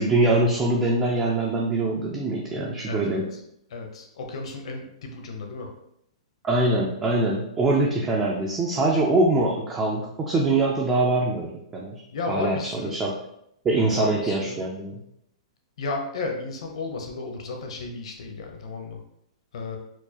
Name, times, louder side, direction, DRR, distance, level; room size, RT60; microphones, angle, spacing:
voice 1, 0.0-3.3 6.4-12.0 12.3-13.1 13.6-15.0, right 2 dB, 10° right, -2 dB, 0.3 m, -23 dB
voice 2, 2.9-3.2 3.7-5.7 12.1-13.0 13.9-14.6 15.8-19.0 19.5-19.8, left 3 dB, 60° left, 3 dB, 0.7 m, -33 dB
4.4 x 2.4 x 2.8 m, 0.76 s
hypercardioid pair, 175°, 4 cm